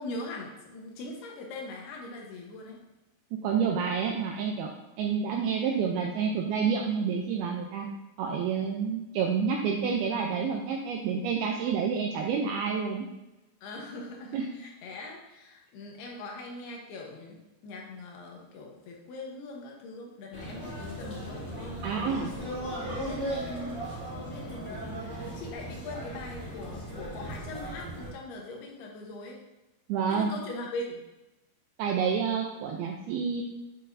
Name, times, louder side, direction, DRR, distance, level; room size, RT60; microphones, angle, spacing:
voice 1, 0.0-2.8 13.6-17.4 17.6-22.4 23.0-23.9 24.3-29.4 30.1-31.0, left 2 dB, 70° left, 0 dB, 3.0 m, -41 dB
voice 2, 3.4-4.7 5.0-7.9 8.2-13.1 14.3-14.5 21.8-22.3 29.9-30.3 31.8-33.4, right 6 dB, 85° right, 1 dB, 2.2 m, -28 dB
sound 1, 20.3-28.1, right 1 dB, 20° left, 2.5 m, -37 dB
8.8 x 7.3 x 2.7 m, 0.99 s
omnidirectional pair, 5.1 m